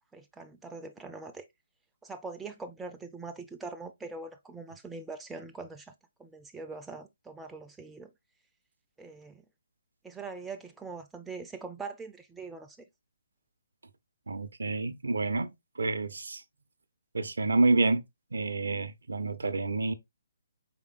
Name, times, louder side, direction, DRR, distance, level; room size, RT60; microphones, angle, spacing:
voice 1, 0.1-1.5 2.0-5.9 6.2-8.1 9.0-9.4 10.0-12.9, right 3 dB, 5° right, 0.3 m, -42 dB
voice 2, 14.3-16.4 17.1-18.0 18.3-19.9, right 3 dB, 70° right, 0.4 m, -28 dB
4.3 x 3.4 x 2.3 m
figure-of-eight pair, 135°, 0 cm